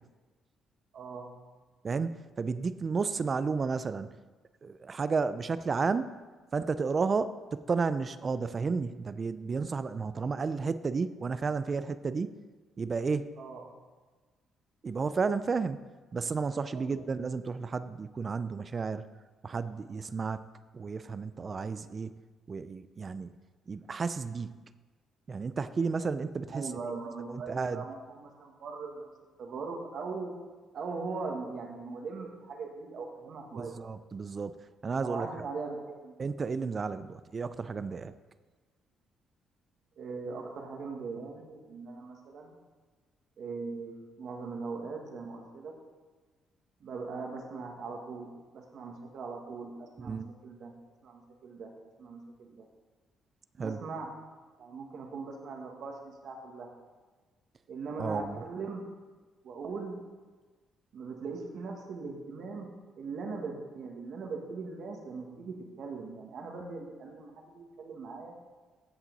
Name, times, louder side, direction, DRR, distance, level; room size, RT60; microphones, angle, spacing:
voice 1, 0.9-1.3 13.4-13.7 16.7-17.0 26.5-29.1 29.4-30.3 30.7-33.8 35.0-36.2 40.0-42.5 43.4-45.7 46.8-50.7 51.0-51.7 52.0-52.6 53.6-54.1 54.6-56.7 57.7-59.0 59.4-60.0 60.9-62.7 63.0-68.3, right 4 dB, 65° right, 2 dB, 1.8 m, -40 dB
voice 2, 1.8-4.1 4.6-6.1 6.5-12.3 12.8-13.3 14.8-15.8 16.1-19.1 19.4-20.5 20.7-22.1 22.5-23.3 23.7-24.6 25.3-26.7 27.3-27.8 33.5-34.6 34.8-35.3 36.2-38.1 50.0-50.3 53.6-53.8 58.0-58.4, right 4 dB, 40° right, 14 dB, 0.4 m, -32 dB
15.5 x 5.7 x 4.1 m, 1.3 s
cardioid pair, 90°, 0 cm